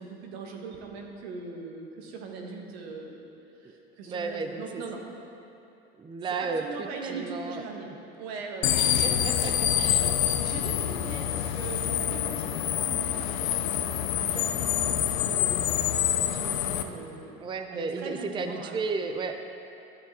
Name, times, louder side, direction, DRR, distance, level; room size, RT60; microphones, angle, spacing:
voice 1, 0.0-3.2 3.6-5.0 6.4-7.9 8.2-9.2 9.6-18.8, right 4 dB, 80° right, 1 dB, 1.4 m, -41 dB
voice 2, 4.1-4.8 5.9-7.6 9.0-10.1 17.4-19.4, right 4 dB, 15° right, 6 dB, 0.5 m, -33 dB
sound 1, 8.6-16.8, left 11 dB, 85° left, 0.6 m, -26 dB
11.5 x 6.8 x 4.3 m, 2.7 s
supercardioid pair, 95°, 31 cm